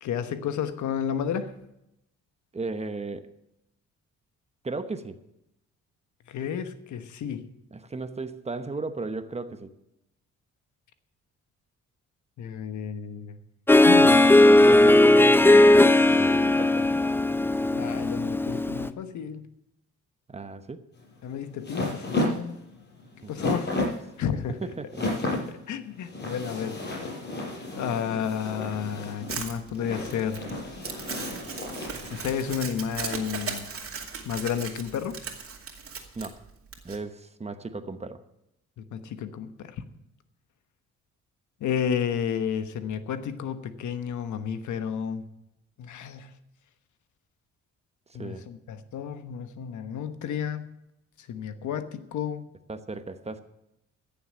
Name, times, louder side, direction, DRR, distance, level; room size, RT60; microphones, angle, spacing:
voice 1, 0.0-1.5 6.3-7.5 12.4-13.4 13.8-14.3 17.7-19.5 21.2-22.6 23.3-23.7 24.2-24.6 25.7-26.8 27.8-30.5 32.1-33.7 34.2-35.2 38.8-39.8 41.6-45.3 45.8-46.3 48.1-50.8 51.2-52.5, left 8 dB, 75° left, 10 dB, 1.2 m, -31 dB
voice 2, 2.5-3.3 4.6-5.2 7.7-9.8 14.4-16.9 20.3-20.9 23.2-23.3 23.8-23.9 24.6-25.1 36.1-36.4 36.8-38.2 48.1-48.4 52.7-53.4, right 3 dB, 20° right, 10 dB, 1.0 m, -35 dB
Harp, 13.7-18.9, left 2 dB, 5° left, 0.5 m, -17 dB
sound 1, 21.0-32.7, left 2 dB, 35° left, 5.6 m, -33 dB
Crumpling crinkling, 29.3-37.0, right 5 dB, 50° right, 2.4 m, -37 dB
14.5 x 7.1 x 7.4 m, 0.84 s
cardioid pair, 90°, 30 cm